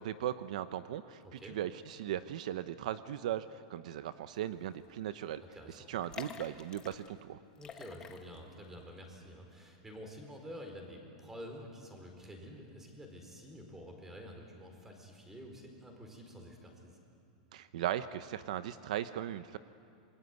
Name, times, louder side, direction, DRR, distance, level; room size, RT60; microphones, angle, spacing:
voice 1, 0.0-5.4 5.7-7.4 17.5-19.6, right 11 dB, 70° right, 12 dB, 0.8 m, -38 dB
voice 2, 1.2-1.6 5.5-5.9 7.6-17.0, equal, 10° right, 3 dB, 4.4 m, -49 dB
sound 1, 4.6-4.9 5.1-5.2 5.9-7.1 7.5-8.6 9.0-9.1, left 6 dB, 20° left, 1.4 m, -48 dB
26.5 x 22.0 x 9.6 m, 2.5 s
supercardioid pair, 155°, 4 cm